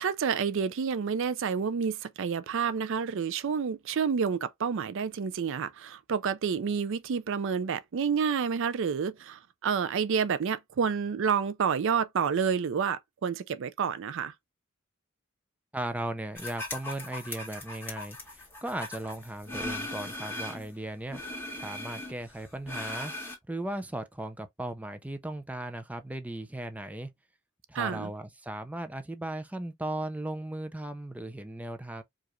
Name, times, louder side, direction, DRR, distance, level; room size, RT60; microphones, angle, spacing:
voice 1, 0.0-14.3 27.7-28.1, right 6 dB, 65° right, 0.4 m, -29 dB
voice 2, 15.7-21.2 21.5-23.1 23.5-27.1 27.7-32.0, right 1 dB, 5° right, 0.5 m, -37 dB
sound 1, 16.4-20.7 21.1-23.4, left 2 dB, 10° left, 1.7 m, -39 dB
4.8 x 2.5 x 3.0 m
head